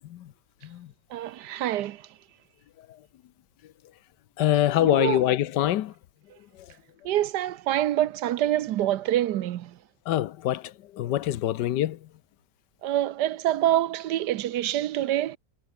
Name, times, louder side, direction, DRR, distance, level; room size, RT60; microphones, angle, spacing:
voice 1, 1.1-2.0 4.8-5.2 7.0-9.8 12.8-15.4, right 13 dB, 80° right, 1.3 m, -26 dB
voice 2, 4.4-5.9 10.1-12.0, left 13 dB, 80° left, 1.4 m, -25 dB
omnidirectional pair, 1.8 m